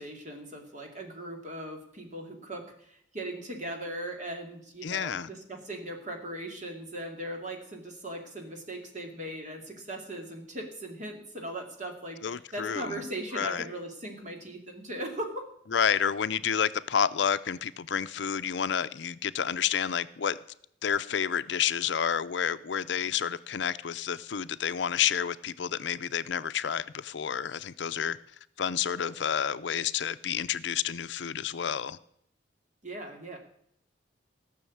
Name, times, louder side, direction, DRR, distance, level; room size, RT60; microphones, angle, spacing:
voice 1, 0.0-15.5 32.8-33.4, right 1 dB, 40° right, 2.5 m, -39 dB
voice 2, 4.8-5.3 12.2-13.0 13.3-13.6 15.7-20.4 20.8-28.2 28.6-32.0, left 8 dB, 70° left, 0.5 m, -29 dB
16.0 x 6.4 x 8.5 m
head